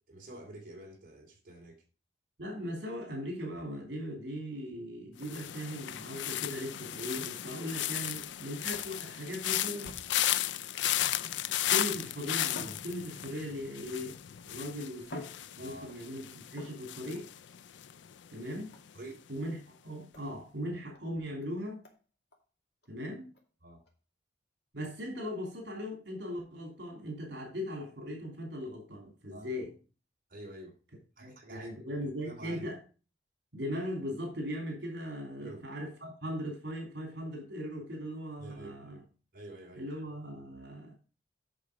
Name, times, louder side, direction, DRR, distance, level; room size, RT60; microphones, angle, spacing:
voice 1, 0.0-1.8 15.6-15.9 18.9-19.2 23.6-23.8 29.3-29.6 30.3-30.8 31.2-32.7 35.4-35.7 38.4-39.9, right 1 dB, 45° right, 3.2 m, -48 dB
voice 2, 2.4-10.0 11.2-14.2 14.4-15.3 15.6-17.3 18.3-18.8 19.3-21.8 22.9-23.3 24.7-29.7 31.2-32.8 33.5-39.0 39.7-40.9, equal, 70° right, 3.0 m, -39 dB
sound 1, 5.2-18.3 18.5-19.0, left 12 dB, 80° left, 0.4 m, -35 dB
sound 2, 8.7-10.3 11.0-11.6 12.4-13.6 14.4-14.5 15.0-16.1 16.5-17.3 18.7-19.0 20.1-20.3 20.9-21.0 21.4-21.5 21.8-22.0 22.3-22.4 22.8-22.9 23.3-23.4 23.9-24.0 24.8-25.0, left 1 dB, 65° left, 2.2 m, -50 dB
8.5 x 6.1 x 4.9 m
head